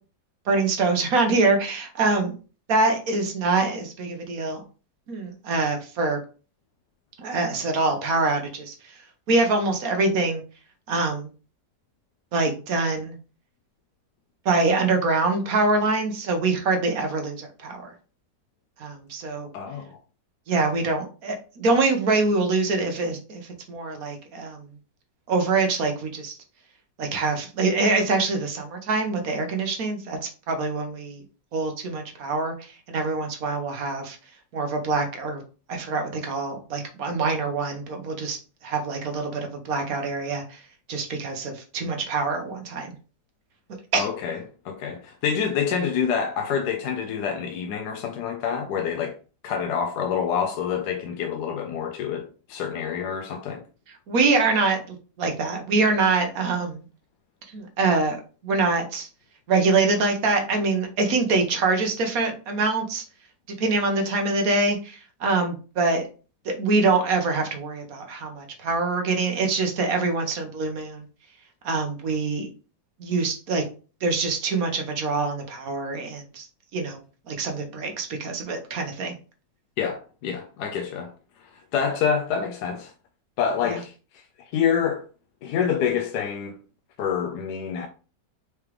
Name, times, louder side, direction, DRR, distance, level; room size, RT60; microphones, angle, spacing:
voice 1, 0.5-2.3 2.7-4.6 5.1-6.2 7.2-9.0 9.3-10.4 10.9-11.3 12.3-13.1 14.4-17.9 18.8-19.5 20.5-23.4 23.7-24.7 25.3-26.4 27.0-31.2 31.5-34.2 34.5-35.4 35.7-40.6 40.9-42.9 43.9-44.1 54.1-56.8 57.5-59.1 59.5-63.0 63.6-66.1 66.4-71.0 71.6-72.5 73.0-73.6 74.0-76.5 76.7-77.0 77.3-79.1 83.7-83.8, right 3 dB, 60° right, 1.2 m, -24 dB
voice 2, 19.5-20.0 43.9-44.4 44.6-49.2 49.4-53.6 79.8-81.1 81.4-82.9 83.4-83.9 84.5-85.1 85.4-86.6 87.0-87.9, left 7 dB, 75° left, 1.1 m, -27 dB
4.8 x 3.3 x 3.0 m
omnidirectional pair, 1.9 m